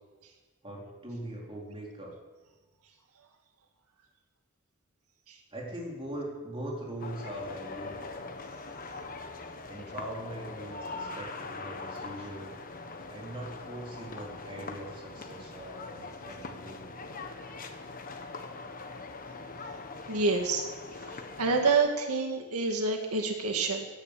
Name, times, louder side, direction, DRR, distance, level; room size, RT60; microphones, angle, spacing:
voice 1, 0.6-2.1 5.5-8.1 9.7-12.5 13.1-16.9, right 1 dB, 25° right, -3 dB, 4.0 m, -41 dB
sound 1, 7.0-21.8, left 3 dB, 40° left, 1.3 m, -42 dB
voice 2, 20.1-20.6 21.4-23.9, right 4 dB, 90° right, 2 dB, 2.1 m, -27 dB
16.0 x 10.5 x 8.5 m, 1.2 s
head